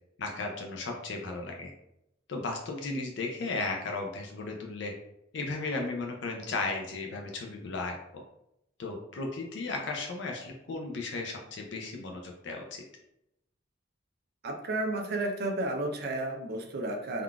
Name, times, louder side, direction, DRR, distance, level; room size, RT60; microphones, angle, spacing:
voice 1, 0.2-1.7 2.3-4.9 5.3-8.0 8.8-12.8, left 3 dB, 60° left, 2 dB, 0.4 m, -35 dB
voice 2, 14.4-17.2, right 2 dB, 50° right, 3 dB, 0.5 m, -32 dB
3.6 x 2.3 x 2.3 m, 0.82 s
head